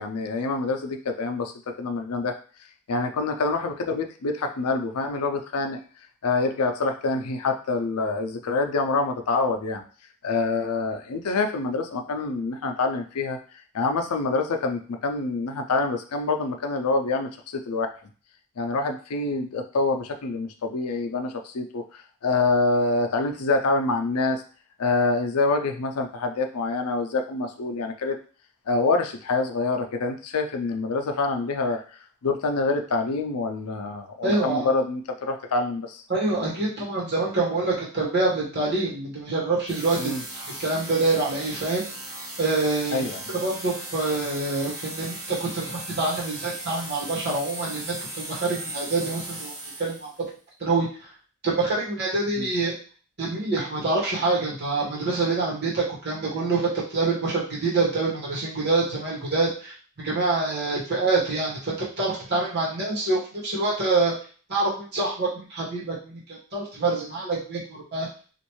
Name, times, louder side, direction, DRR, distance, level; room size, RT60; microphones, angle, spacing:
voice 1, 0.0-2.4 2.9-5.8 6.2-9.8 10.2-17.9 18.6-24.4 24.8-28.2 28.7-36.0 40.0-40.2 42.9-43.2 52.4-52.5, left 3 dB, 85° left, 5 dB, 0.5 m, -26 dB
voice 2, 34.2-34.7 36.1-40.1 40.6-41.9 42.4-43.0 43.4-49.5 49.8-50.1 50.6-51.1 51.4-52.7 53.2-64.1 64.5-68.1, right 3 dB, 45° right, -5 dB, 1.4 m, -26 dB
sound 1, 39.7-50.2, right 1 dB, 15° right, 0.9 m, -37 dB
3.1 x 2.5 x 3.1 m, 0.40 s
head